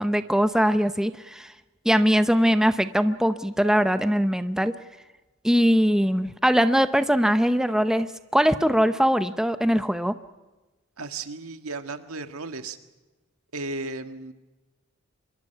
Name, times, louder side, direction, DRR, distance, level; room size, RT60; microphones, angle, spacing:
voice 1, 0.0-1.5 1.8-4.7 5.4-10.2, equal, 5° right, 10 dB, 0.7 m, -21 dB
voice 2, 11.0-12.8 13.5-14.3, right 3 dB, 85° right, 8 dB, 1.7 m, -34 dB
25.0 x 23.0 x 5.8 m, 1.2 s
head